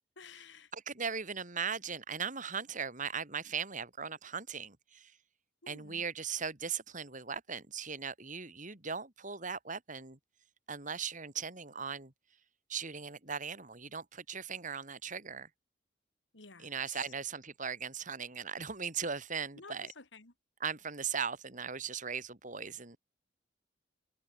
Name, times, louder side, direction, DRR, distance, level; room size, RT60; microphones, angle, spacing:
voice 1, 0.0-0.7 5.6-6.0 16.3-17.0 19.5-20.3, left 4 dB, 70° left, 3.3 m, -53 dB
voice 2, 0.7-5.1 5.7-10.2 10.7-12.1 12.7-15.5 16.6-19.9 20.6-23.0, right 6 dB, 45° right, 3.3 m, -38 dB
head